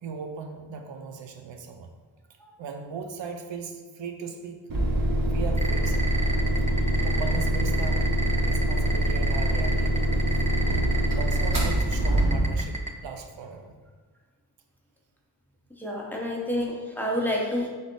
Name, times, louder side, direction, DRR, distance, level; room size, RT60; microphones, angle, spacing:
voice 1, 0.0-1.9 2.6-4.6 5.3-6.3 7.0-8.1 8.4-10.1 11.1-12.8 13.0-13.7, right 5 dB, 80° right, 4 dB, 0.6 m, -38 dB
sound 1, 4.7-12.7, right 1 dB, 50° right, 1.0 m, -24 dB
sound 2, 5.6-12.9, right 3 dB, 15° right, 0.4 m, -32 dB
voice 2, 15.8-17.7, left 1 dB, 5° left, -2 dB, 0.9 m, -28 dB
3.8 x 3.4 x 3.7 m, 1.5 s
wide cardioid pair, 75°, 44 cm